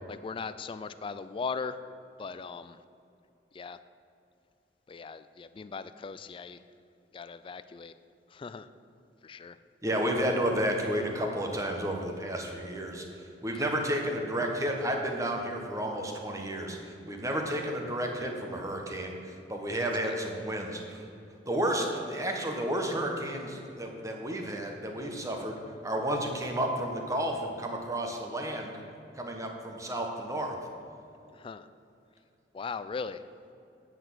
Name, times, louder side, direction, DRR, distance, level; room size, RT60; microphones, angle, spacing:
voice 1, 0.1-1.8 2.2-2.8 3.5-3.8 4.9-6.6 7.1-7.9 8.3-8.7 9.2-9.5 31.4-31.7 32.5-33.2, left 5 dB, 30° left, 12 dB, 0.3 m, -38 dB
voice 2, 9.8-13.0 13.4-21.0 21.5-25.6 25.8-28.8 29.1-30.5, right 1 dB, 20° right, 2 dB, 1.2 m, -31 dB
9.2 x 6.0 x 7.7 m, 2.6 s
head